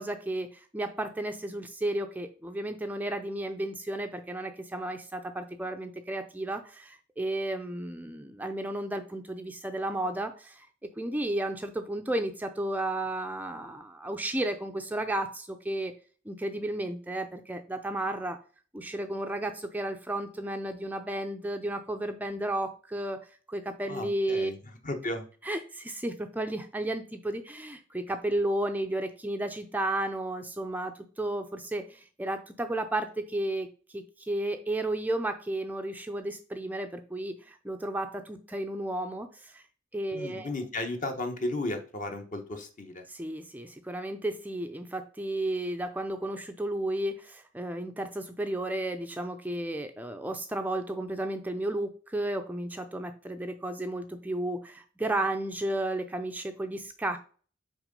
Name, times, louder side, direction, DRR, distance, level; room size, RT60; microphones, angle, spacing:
voice 1, 0.0-10.7 11.0-15.9 16.3-18.4 18.7-23.2 23.5-24.5 25.4-39.6 39.9-40.5 43.1-57.2, right 1 dB, 10° right, 6 dB, 0.5 m, -33 dB
voice 2, 23.9-25.2 40.1-43.1, left 2 dB, 40° left, 6 dB, 1.1 m, -34 dB
6.1 x 4.7 x 5.2 m, 0.40 s
head